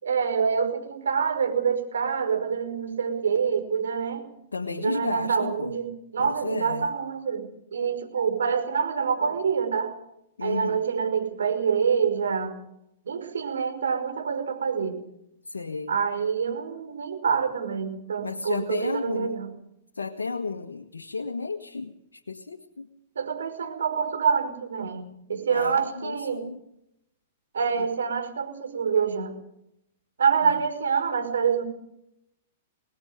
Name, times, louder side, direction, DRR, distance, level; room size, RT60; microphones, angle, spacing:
voice 1, 0.0-4.3 4.8-9.9 10.4-12.5 13.1-15.0 15.9-19.5 23.2-26.5 27.5-29.3 30.2-31.6, right 6 dB, 80° right, 6 dB, 5.3 m, -26 dB
voice 2, 4.5-5.7 6.2-6.9 10.4-10.8 15.5-16.0 18.2-19.4 20.0-21.9 22.3-22.9 25.5-26.6 30.4-30.5, left 4 dB, 85° left, 4 dB, 1.6 m, -32 dB
25.0 x 20.5 x 5.2 m, 0.77 s
hypercardioid pair, 110°, 0 cm